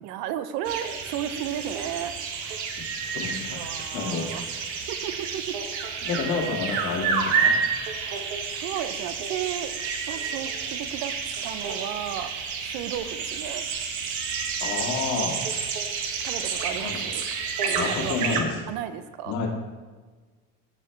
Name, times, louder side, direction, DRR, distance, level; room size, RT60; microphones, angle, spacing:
voice 1, 0.0-2.6 3.5-4.4 4.9-5.6 6.2-6.3 7.8-8.3 8.5-9.7 10.1-11.2 11.4-12.3 12.6-13.6 16.2-17.2 17.6-18.3 18.7-19.3, right 10 dB, 85° right, 11 dB, 0.7 m, -34 dB
sound 1, 0.6-18.4, right 5 dB, 70° right, 1.3 m, -30 dB
voice 2, 2.8-3.7 3.9-4.3 6.0-7.5 14.6-15.4 16.8-17.1 17.7-18.6 19.3-19.5, left 4 dB, 75° left, 0 dB, 2.1 m, -30 dB
14.5 x 5.1 x 3.2 m, 1.4 s
cardioid pair, 160°, 31 cm